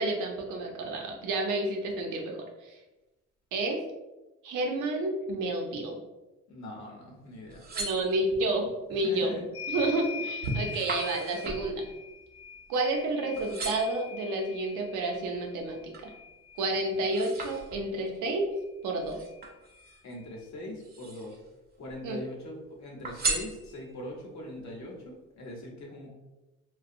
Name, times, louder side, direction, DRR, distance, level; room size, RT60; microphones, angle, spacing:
voice 1, 0.0-2.4 3.5-3.8 4.4-6.0 7.7-9.3 9.7-11.8 12.7-16.1 16.6-18.5 18.8-19.2 22.0-22.2, right 2 dB, 90° right, 1 dB, 0.6 m, -30 dB
voice 2, 6.5-7.6 8.9-9.5 20.0-21.4 21.8-26.2, left 1 dB, 65° left, -1 dB, 0.8 m, -41 dB
sound 1, 7.3-8.6 9.2-9.6 10.0-13.1 13.4-14.1 14.7-16.2 16.6-18.1 19.0-20.2 20.7-21.5 21.8-22.6 23.0-24.1 24.6-24.7, right 3 dB, 30° right, 0.5 m, -38 dB
sound 2, 9.5-17.7 18.9-19.0 19.3-20.4, left 7 dB, 50° left, 0.4 m, -43 dB
2.4 x 2.2 x 2.6 m, 1.1 s
cardioid pair, 90°, 30 cm